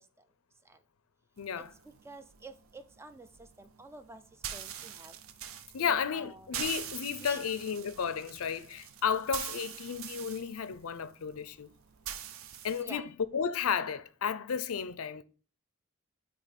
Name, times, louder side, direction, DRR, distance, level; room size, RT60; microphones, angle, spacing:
voice 1, 1.4-1.7 5.7-11.7 12.6-15.2, left 7 dB, 90° left, 0.5 m, -33 dB
sound 1, 1.4-12.8, right 9 dB, 70° right, 0.5 m, -44 dB
voice 2, 2.0-3.3 3.6-4.2 4.5-5.1 5.8-6.6 7.3-7.5 12.8-13.1, right 2 dB, 10° right, 0.4 m, -49 dB
8.1 x 2.9 x 4.1 m
head